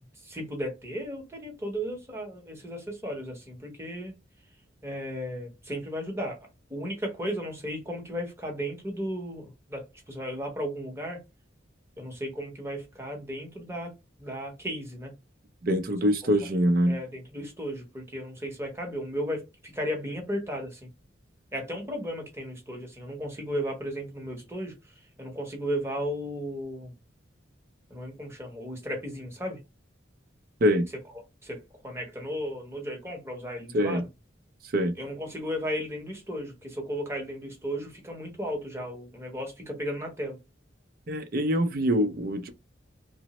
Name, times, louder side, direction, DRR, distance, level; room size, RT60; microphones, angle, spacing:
voice 1, 0.2-4.1 4.8-6.4 6.7-11.2 12.0-13.9 14.2-15.1 16.9-20.9 21.5-24.8 25.2-26.9 27.9-29.6 31.4-34.0 35.0-40.4, equal, 15° right, 0.8 m, -35 dB
voice 2, 15.6-17.0 30.6-30.9 33.7-34.0 34.7-34.9 41.1-42.5, equal, 50° right, 0.4 m, -24 dB
3.0 x 2.0 x 2.9 m
head